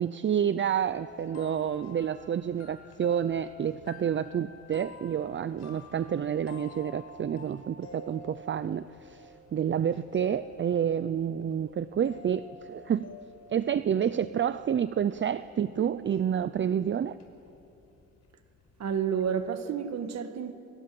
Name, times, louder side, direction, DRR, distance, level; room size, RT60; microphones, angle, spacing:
voice 1, 0.0-13.1 13.5-17.1, right 8 dB, 40° right, 14 dB, 0.7 m, -29 dB
sound 1, 0.7-19.4, left 2 dB, 55° left, 5.1 m, -50 dB
voice 2, 18.8-20.5, right 7 dB, 60° right, 8 dB, 1.8 m, -30 dB
27.5 x 27.0 x 7.8 m, 2.8 s
cardioid pair, 90°, 30 cm